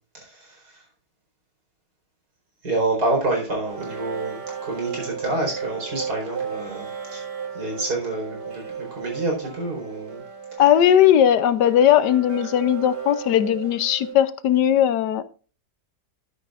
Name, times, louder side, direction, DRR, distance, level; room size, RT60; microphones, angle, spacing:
voice 1, 2.6-4.4 4.7-7.2 7.5-8.6 8.9-10.2, right 2 dB, 65° right, 5.0 m, -27 dB
sound 1, 3.7-14.1, right 6 dB, 90° right, 2.6 m, -35 dB
voice 2, 10.6-15.2, left 10 dB, 80° left, 1.3 m, -18 dB
12.0 x 10.0 x 2.5 m
omnidirectional pair, 1.8 m